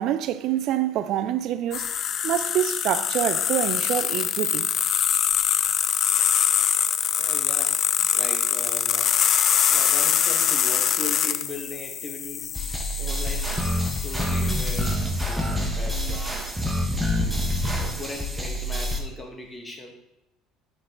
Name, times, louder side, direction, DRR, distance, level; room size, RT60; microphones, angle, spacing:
voice 1, 0.0-4.7, right 11 dB, 60° right, 0.5 m, -26 dB
sound 1, 1.7-14.9, left 9 dB, 50° left, 0.5 m, -24 dB
voice 2, 7.2-7.8 8.1-12.5 13.0-13.6 13.9-16.5 17.8-19.9, left 2 dB, 15° left, 2.0 m, -39 dB
sound 2, 12.5-19.0, left 1 dB, ahead, 1.5 m, -26 dB
9.8 x 5.9 x 4.0 m
supercardioid pair, 100°, 0 cm